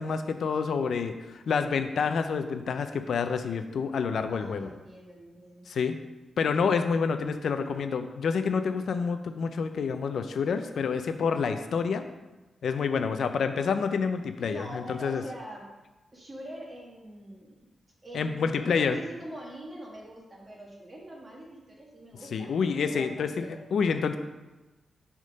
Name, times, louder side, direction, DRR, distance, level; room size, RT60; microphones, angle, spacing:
voice 1, 0.0-4.7 5.7-5.9 6.4-12.0 12.6-15.2 18.1-19.0 22.3-23.5 23.7-24.2, left 5 dB, 70° left, 8 dB, 0.4 m, -28 dB
voice 2, 4.3-5.6 14.4-15.7 16.1-17.6 18.0-22.5 22.8-23.6, right 1 dB, 25° right, -2 dB, 1.5 m, -44 dB
6.4 x 3.6 x 5.2 m, 1.1 s
wide cardioid pair, 140°, 0 cm